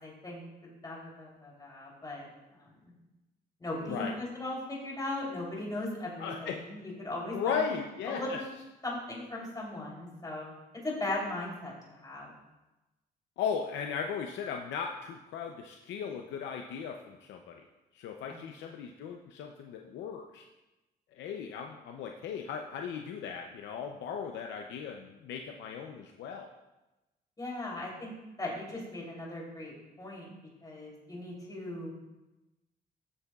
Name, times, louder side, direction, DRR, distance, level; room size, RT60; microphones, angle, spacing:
voice 1, 0.0-0.4 0.8-2.3 2.5-2.7 3.6-4.1 4.4-7.7 8.1-8.5 8.8-10.5 10.8-12.3 18.3-18.4 27.4-28.1 28.4-30.3 30.6-31.9, left 1 dB, 20° left, -4 dB, 3.2 m, -38 dB
voice 2, 3.8-4.2 6.2-6.6 7.3-8.4 13.4-17.7 17.9-20.5 21.1-26.5, left 6 dB, 85° left, 3 dB, 0.6 m, -37 dB
13.0 x 6.7 x 2.4 m, 1.0 s
cardioid pair, 85°, 18 cm